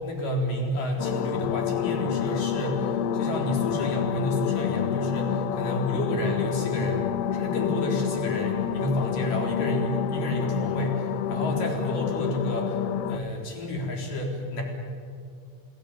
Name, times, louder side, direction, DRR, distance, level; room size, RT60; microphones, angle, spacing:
voice 1, 0.0-7.0 7.3-14.6, left 1 dB, 45° left, 1 dB, 5.2 m, -30 dB
sound 1, 1.0-13.2, left 9 dB, 80° left, 3.3 m, -28 dB
30.0 x 17.0 x 9.7 m, 2.2 s
omnidirectional pair, 5.8 m